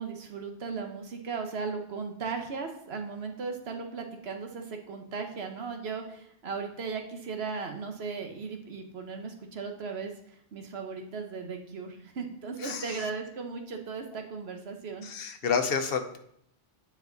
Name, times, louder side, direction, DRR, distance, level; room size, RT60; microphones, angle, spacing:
voice 1, 0.0-10.1 10.5-15.1, right 5 dB, 85° right, 4 dB, 1.2 m, -37 dB
voice 2, 12.6-13.0 15.0-16.2, left 6 dB, 70° left, 8 dB, 1.0 m, -30 dB
9.4 x 4.8 x 3.9 m, 0.72 s
omnidirectional pair, 1.0 m